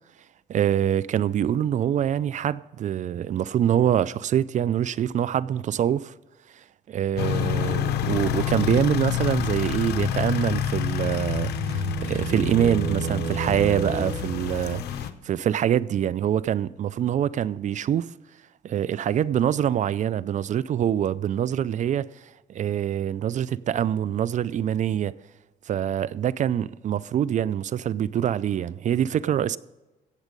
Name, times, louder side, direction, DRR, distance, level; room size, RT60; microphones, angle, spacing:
voice 1, 0.5-6.1 6.9-18.1 18.6-22.1 22.5-25.1 25.7-29.6, right 10 dB, 50° right, 0.4 m, -25 dB
sound 1, 7.2-15.1, left 10 dB, 85° left, 0.9 m, -28 dB
sound 2, 10.7-14.6, right 4 dB, 80° right, 3.0 m, -32 dB
16.5 x 7.3 x 5.2 m
cardioid pair, 100°, 16 cm